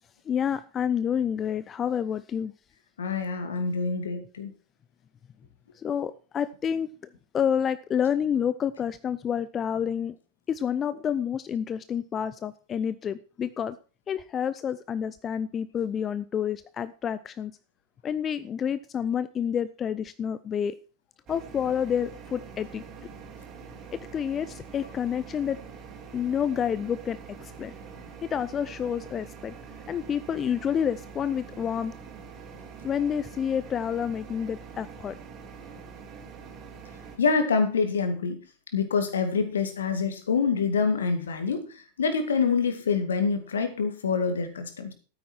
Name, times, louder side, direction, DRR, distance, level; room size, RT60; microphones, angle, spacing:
voice 1, 0.3-2.5 5.7-6.9 7.3-10.1 10.5-13.8 14.1-17.5 18.0-20.7 21.3-22.8 23.9-25.6 26.1-27.7 28.2-29.5 29.9-31.9 32.8-35.2, left 8 dB, 25° left, 0.5 m, -29 dB
voice 2, 3.0-4.5 37.2-38.4 38.7-41.7 42.0-44.9, left 5 dB, 65° left, 2.1 m, -26 dB
sound 1, 21.3-37.2, right 5 dB, 30° right, 3.6 m, -44 dB
13.0 x 9.3 x 4.5 m
figure-of-eight pair, 90°, 0 cm